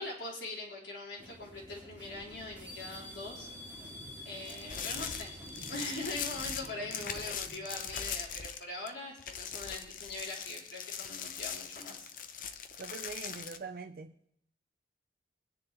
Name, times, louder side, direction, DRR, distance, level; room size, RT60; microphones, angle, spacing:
voice 1, 0.0-3.5 4.2-5.4 5.7-12.1, left 2 dB, 85° left, -4 dB, 4.2 m, -42 dB
sound 1, 1.2-6.5, left 1 dB, 10° right, 2.4 m, -48 dB
sound 2, 2.1-8.1, equal, 35° right, 2.5 m, -53 dB
sound 3, 4.5-8.9 9.2-13.6, left 7 dB, 50° left, 0.7 m, -40 dB
voice 2, 12.8-14.1, right 4 dB, 55° right, 4 dB, 0.6 m, -43 dB
22.5 x 10.0 x 3.1 m, 0.72 s
head